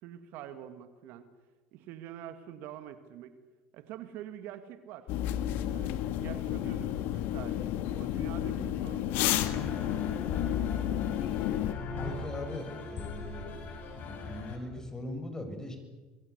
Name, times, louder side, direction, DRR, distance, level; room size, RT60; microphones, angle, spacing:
voice 1, 0.0-1.3 1.7-3.4 3.7-5.1 5.7-9.2, right 11 dB, 65° right, 10 dB, 2.1 m, -45 dB
sound 1, 5.1-11.7, left 12 dB, 65° left, 1.8 m, -31 dB
sound 2, 9.4-14.6, left 4 dB, 50° left, 6.5 m, -39 dB
voice 2, 12.0-13.6 14.0-15.8, left 1 dB, 15° left, 7 dB, 6.8 m, -40 dB
26.0 x 22.0 x 8.2 m, 1.3 s
hypercardioid pair, 85°, 4 cm